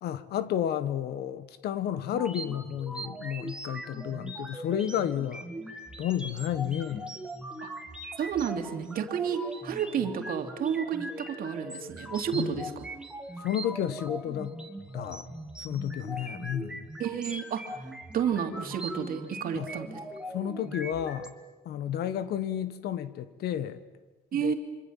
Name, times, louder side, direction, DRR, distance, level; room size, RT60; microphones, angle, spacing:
voice 1, 0.0-5.5 6.0-7.1 12.3-12.6 13.4-14.6 14.9-15.3 15.6-16.9 19.5-19.7 20.3-21.3 21.6-23.9 24.3-24.5, left 10 dB, 70° left, 1.4 m, -31 dB
sound 1, 2.1-21.3, right 1 dB, 5° right, 2.4 m, -40 dB
voice 2, 8.2-12.7 17.0-17.8 18.1-20.0 24.3-24.5, right 8 dB, 60° right, 2.8 m, -31 dB
26.5 x 25.5 x 7.5 m
cardioid pair, 110°, 17 cm